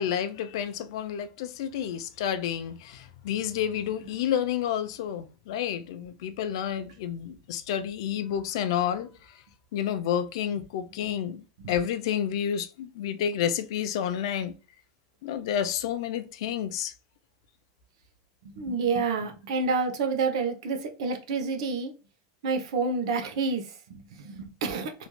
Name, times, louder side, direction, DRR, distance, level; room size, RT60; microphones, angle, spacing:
voice 1, 0.0-9.1 9.7-14.6 15.2-16.9, left 9 dB, 60° left, 0.4 m, -30 dB
voice 2, 18.4-21.9 22.4-24.9, right 4 dB, 70° right, 0.7 m, -29 dB
3.1 x 2.5 x 2.2 m
supercardioid pair, 170°, 3 cm